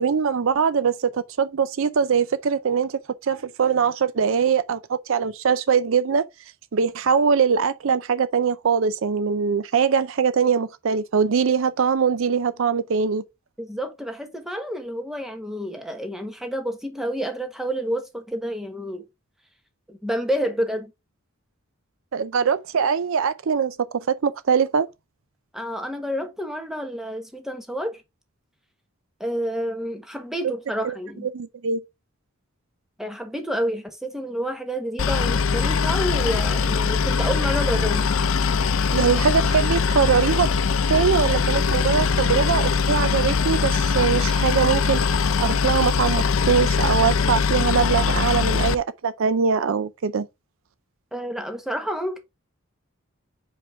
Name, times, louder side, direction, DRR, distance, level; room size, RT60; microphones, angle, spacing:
voice 1, 0.0-6.2 6.7-13.2 22.1-24.9 30.8-31.0 31.2-31.8 38.9-40.5 40.9-45.0 45.4-50.3, right 6 dB, 65° right, 0.5 m, -22 dB
voice 2, 13.6-19.0 19.9-20.9 25.5-28.0 29.2-31.3 33.0-38.2 51.1-52.2, equal, ahead, 1.2 m, -29 dB
Boat Water vehicle, 35.0-48.7, left 5 dB, 65° left, 0.6 m, -22 dB
Car passing by / Idling / Accelerating revving vroom, 37.3-48.3, right 1 dB, 20° right, 1.7 m, -46 dB
5.1 x 5.0 x 4.5 m
head